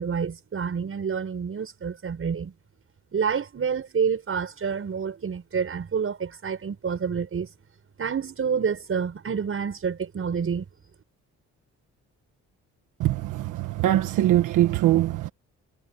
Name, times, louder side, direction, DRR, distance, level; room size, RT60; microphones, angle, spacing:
voice 1, 0.0-2.5 3.1-7.5 8.0-10.7, right 6 dB, 45° right, 6.9 m, -28 dB
voice 2, 13.0-15.3, right 13 dB, 90° right, 1.4 m, -22 dB
cardioid pair, 90°, 30 cm